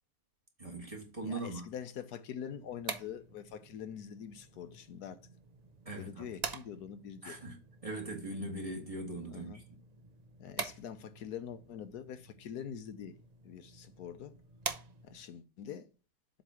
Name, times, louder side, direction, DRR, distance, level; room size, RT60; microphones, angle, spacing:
voice 1, 0.6-1.7 5.8-6.3 7.2-7.6 7.8-9.6, right 2 dB, 20° right, 1.5 m, -40 dB
voice 2, 1.2-5.2 5.9-7.4 9.3-9.6 10.4-13.2 13.4-14.3 15.0-15.9, left 8 dB, 80° left, 1.3 m, -44 dB
sound 1, 2.5-15.4, right 5 dB, 55° right, 0.4 m, -46 dB
7.6 x 3.2 x 6.1 m
omnidirectional pair, 1.7 m